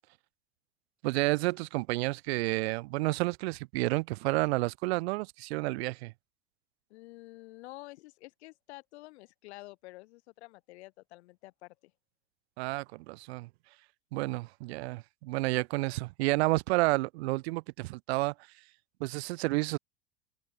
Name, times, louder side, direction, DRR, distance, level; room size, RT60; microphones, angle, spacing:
voice 1, 1.0-6.1 12.6-13.5 14.1-18.3 19.0-19.8, right 22 dB, 60° right, 0.4 m, -30 dB
voice 2, 6.9-11.9, left 20 dB, 65° left, 2.0 m, -49 dB
hypercardioid pair, 80°, 36 cm